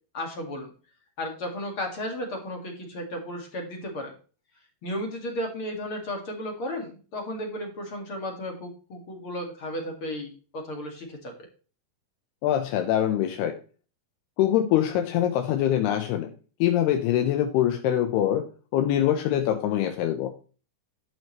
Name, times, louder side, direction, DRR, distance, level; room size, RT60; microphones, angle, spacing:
voice 1, 0.1-0.7 1.2-4.1 4.8-11.3, left 1 dB, 40° left, 2 dB, 2.1 m, -34 dB
voice 2, 12.4-13.5 14.4-16.3 16.6-18.4 18.7-20.3, left 11 dB, 80° left, 6 dB, 2.8 m, -24 dB
11.5 x 7.8 x 3.1 m, 0.36 s
omnidirectional pair, 4.9 m